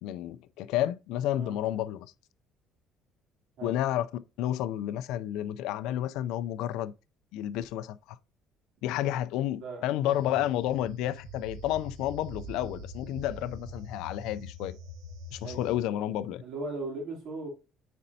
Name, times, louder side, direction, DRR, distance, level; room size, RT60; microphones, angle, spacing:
voice 1, 0.0-2.1 3.6-4.1 4.4-6.9 7.3-8.2 8.8-14.8 15.3-16.4, left 12 dB, 80° left, 0.4 m, -31 dB
voice 2, 9.6-10.1 15.4-15.7 16.4-17.5, right 2 dB, 60° right, 2.8 m, -38 dB
sound 1, 10.1-15.8, equal, 80° right, 1.7 m, -44 dB
9.3 x 4.2 x 2.7 m
cardioid pair, 160°, 0 cm